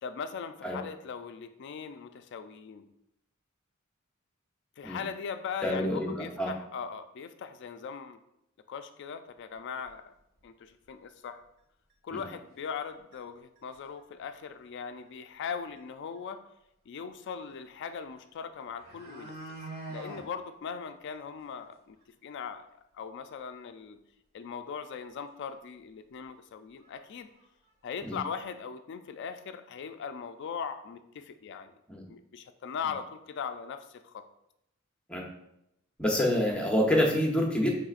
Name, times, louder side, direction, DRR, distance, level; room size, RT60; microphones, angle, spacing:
voice 1, 0.0-2.9 4.8-8.2 8.7-10.1 10.4-11.4 12.0-16.4 16.9-19.3 19.9-22.0 22.2-22.7 22.9-24.0 24.3-27.3 27.8-31.7 32.1-34.2, left 6 dB, 60° left, 9 dB, 0.3 m, -39 dB
voice 2, 5.6-6.5 12.1-12.2 28.0-28.2 31.9-32.0 35.1-35.2 36.0-37.7, left 1 dB, 5° left, -1 dB, 0.7 m, -27 dB
sound 1, 9.8-9.9 10.4-10.5 10.8-10.9 11.9-12.0 12.6-12.8 13.1-13.2 13.6-14.0 15.4-15.5 15.8-15.9 18.2-18.3 18.6-20.2 20.6-20.7 21.1-21.2 21.6-21.7 22.0-22.1 24.9-25.0 25.4-25.5 26.2-26.3 26.8-27.0 27.3-28.1 28.4-28.5, right 2 dB, 50° right, 1.5 m, -45 dB
6.1 x 3.2 x 2.4 m, 0.82 s
head